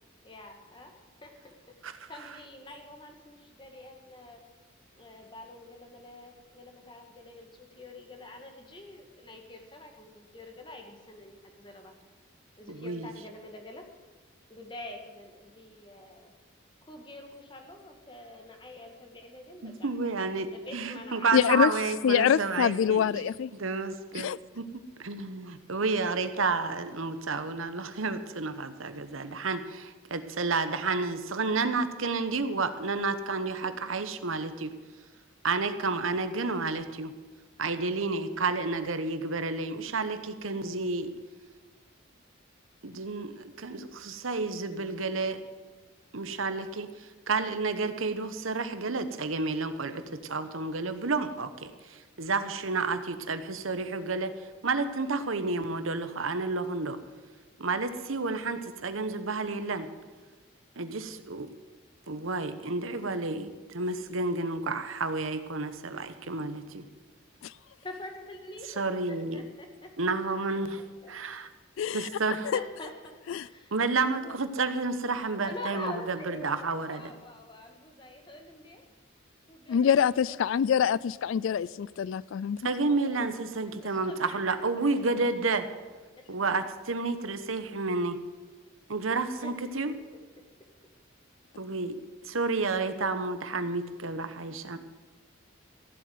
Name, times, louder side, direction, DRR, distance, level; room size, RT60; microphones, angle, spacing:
voice 1, 0.2-1.8 2.1-4.5 4.9-11.9 12.6-13.9 14.5-16.3 16.8-19.9 20.3-21.4 67.8-70.0 70.3-70.4 70.8-71.1 72.0-73.8 75.1-78.9 79.5-80.5 83.0-83.3 83.7-85.1 86.1-86.6 88.9-89.6, left 2 dB, 25° left, 4 dB, 1.9 m, -46 dB
voice 2, 12.7-13.1 19.6-23.2 23.5-24.3 24.5-34.7 35.4-37.1 37.6-41.1 42.8-45.4 46.1-54.3 54.6-57.0 57.6-59.9 60.8-61.5 62.1-66.9 68.8-69.4 70.0-70.8 71.1-71.5 71.9-72.5 73.7-77.1 82.6-85.7 86.3-88.2 88.9-89.9 91.6-94.8, right 3 dB, 85° right, 10 dB, 1.1 m, -31 dB
voice 3, 21.3-21.7 22.0-23.5 24.1-24.4 67.4-67.5 71.8-72.1 72.4-72.6 73.3-73.5 79.7-82.6, left 8 dB, 75° left, 21 dB, 0.3 m, -25 dB
15.0 x 7.6 x 9.3 m, 1.3 s
head